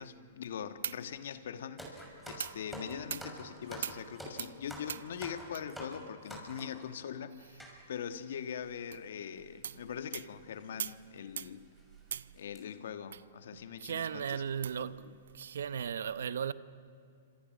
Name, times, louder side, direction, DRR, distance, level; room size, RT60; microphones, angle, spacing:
voice 1, 0.0-11.7 12.3-14.4 14.8-15.2, left 8 dB, 70° left, 1.4 m, -42 dB
sound 1, 1.8-6.8 7.6-7.8 8.5-8.6 8.7-8.9 9.9-10.1 10.6-10.7 11.2-11.3 11.8-12.0 12.4-12.6, right 1 dB, ahead, 6.4 m, -46 dB
voice 2, 13.8-15.0 15.3-16.5, right 8 dB, 75° right, 0.8 m, -36 dB
27.5 x 26.5 x 6.4 m
hypercardioid pair, 120°, 0 cm